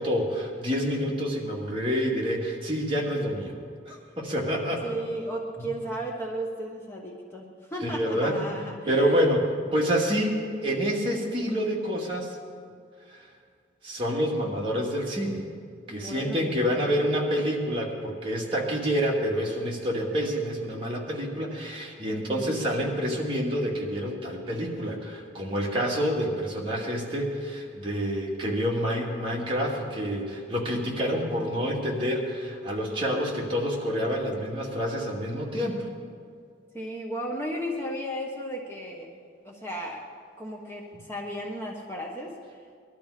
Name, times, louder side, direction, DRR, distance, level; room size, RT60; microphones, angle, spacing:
voice 1, 0.0-3.5 3.9-4.9 7.8-8.4 8.9-12.4 13.8-15.4 15.9-35.9, equal, 30° right, -3 dB, 2.4 m, -28 dB
voice 2, 4.8-9.3 15.9-17.0 22.1-22.6 36.7-40.0 40.4-42.3, equal, 15° left, -1 dB, 1.2 m, -35 dB
20.5 x 12.5 x 5.0 m, 2.2 s
head